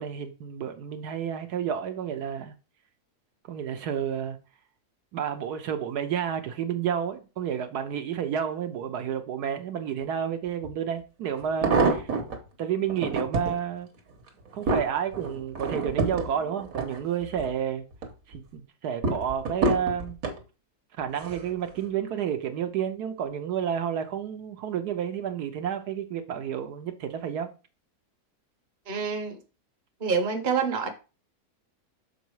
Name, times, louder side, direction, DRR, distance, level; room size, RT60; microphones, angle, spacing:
voice 1, 0.0-2.5 3.5-4.4 5.1-12.1 12.6-13.9 14.5-17.9 18.3-20.2 21.0-27.5, right 8 dB, 80° right, 1.3 m, -30 dB
sound 1, 10.6-10.7 11.4-12.4 12.9-13.6 14.1-17.5 17.9-18.4 19.0-20.4 21.2-21.5 21.8-21.9, right 3 dB, 60° right, 1.5 m, -28 dB
voice 2, 28.9-29.4 30.0-30.9, right 5 dB, 35° right, 1.0 m, -27 dB
6.4 x 4.0 x 4.6 m
omnidirectional pair, 1.7 m